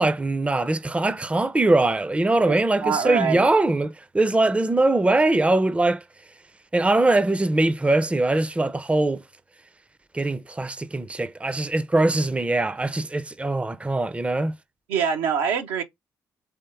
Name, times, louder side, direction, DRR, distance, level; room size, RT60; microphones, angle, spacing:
voice 1, 0.0-6.0 6.7-9.2 10.1-14.5, right 2 dB, 15° right, 0.5 m, -22 dB
voice 2, 2.8-3.5 14.9-15.8, right 7 dB, 80° right, 0.7 m, -24 dB
3.5 x 3.3 x 4.4 m
hypercardioid pair, 50°, 9 cm